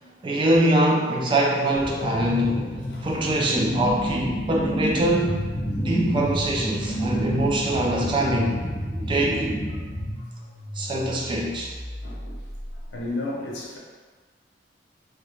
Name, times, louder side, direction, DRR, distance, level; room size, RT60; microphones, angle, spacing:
voice 1, 0.2-5.5 5.8-8.6 9.1-9.5 10.8-11.7, right 1 dB, 25° right, -2 dB, 0.3 m, -23 dB
sound 1, 1.7-10.2, equal, 25° left, 0.5 m, -29 dB
voice 2, 1.9-2.3 2.9-3.1 7.6-7.9 9.0-9.1 12.0-12.4 12.9-13.8, left 2 dB, 75° left, -3 dB, 0.6 m, -34 dB
sound 2, 3.0-13.1, equal, 65° right, 0.7 m, -41 dB
2.3 x 2.1 x 3.0 m, 1.4 s
head